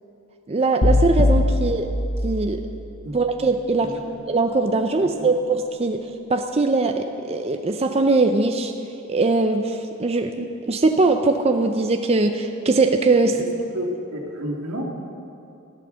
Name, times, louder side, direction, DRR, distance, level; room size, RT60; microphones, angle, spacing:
voice 1, 0.5-1.9 2.2-2.6 3.1-3.9 4.3-8.7 9.1-13.4, right 3 dB, 30° right, 5 dB, 0.5 m, -21 dB
sound 1, 0.8-2.9, left 2 dB, 70° left, 0.9 m, -21 dB
voice 2, 5.0-5.3 13.3-13.4 13.7-14.8, equal, 85° right, -1 dB, 2.3 m, -31 dB
14.5 x 12.0 x 6.3 m, 2.6 s
head